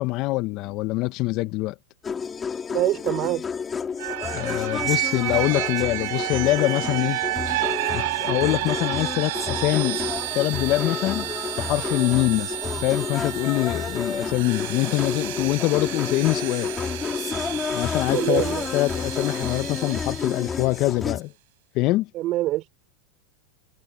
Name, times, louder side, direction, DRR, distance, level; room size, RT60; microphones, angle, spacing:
voice 1, 0.0-1.8 4.3-7.2 7.9-10.0 10.3-11.3 11.6-16.7 17.7-21.3 21.7-22.1, left 19 dB, 50° left, 1.0 m, -24 dB
sound 1, 2.0-21.2, left 6 dB, 20° left, 2.3 m, -31 dB
voice 2, 2.7-3.4 18.1-18.7 22.1-22.7, right 16 dB, 45° right, 4.1 m, -24 dB
sound 2, 4.0-20.7, right 20 dB, 65° right, 4.8 m, -31 dB
hypercardioid pair, 115°, 0 cm